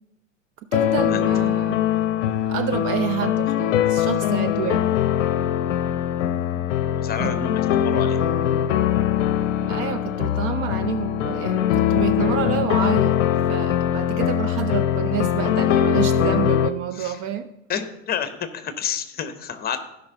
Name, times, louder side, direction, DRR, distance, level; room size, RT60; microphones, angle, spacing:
sound 1, 0.7-16.7, left 10 dB, 70° left, 0.6 m, -22 dB
voice 1, 0.7-1.8 2.5-5.0 7.2-7.3 9.6-13.2 13.5-17.5, right 10 dB, 35° right, 10 dB, 0.5 m, -28 dB
voice 2, 6.9-8.2 17.0-17.1 17.7-19.8, left 8 dB, 25° left, 10 dB, 0.9 m, -29 dB
16.0 x 5.4 x 3.8 m, 0.86 s
figure-of-eight pair, 90°, 39 cm